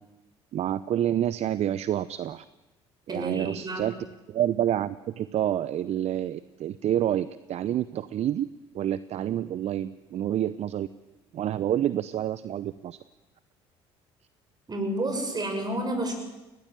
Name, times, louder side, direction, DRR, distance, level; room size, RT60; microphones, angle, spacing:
voice 1, 0.5-2.4 3.1-4.0 4.3-8.5 8.7-10.9 11.3-13.0, right 11 dB, 55° right, 16 dB, 0.7 m, -28 dB
voice 2, 3.1-3.9 14.7-16.1, right 1 dB, 30° right, 5 dB, 7.2 m, -30 dB
21.0 x 17.5 x 9.1 m, 1.1 s
hypercardioid pair, 65°, 14 cm